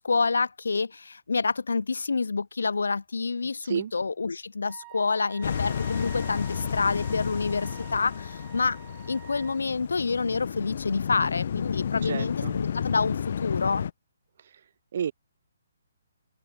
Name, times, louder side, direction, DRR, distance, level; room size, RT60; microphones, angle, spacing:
voice 1, 0.0-8.8 9.1-13.9, left 4 dB, 70° left, 0.3 m, -28 dB
Wind instrument woodwind instrument, 4.6-9.6, right 33 dB, 25° right, 0.9 m, -48 dB
sound 1, 5.4-13.9, left 8 dB, 55° left, 0.7 m, -32 dB
voice 2, 12.0-12.6 14.9-15.1, right 8 dB, 50° right, 0.6 m, -30 dB
open air
figure-of-eight pair, 135°, 0 cm